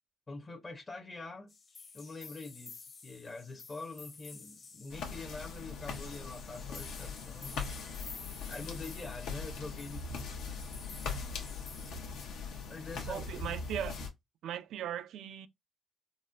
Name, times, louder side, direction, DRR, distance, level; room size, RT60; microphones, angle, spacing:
voice 1, 0.3-1.5 1.9-7.6 8.5-10.4 12.7-13.2, left 3 dB, 30° left, 0.7 m, -45 dB
sound 1, 1.5-11.9, left 4 dB, 50° left, 1.2 m, -51 dB
sound 2, 4.9-14.1, left 4 dB, 85° left, 0.9 m, -41 dB
voice 2, 13.1-14.0 14.4-15.5, right 10 dB, 80° right, 0.4 m, -38 dB
4.0 x 2.1 x 2.4 m
cardioid pair, 90°, 0 cm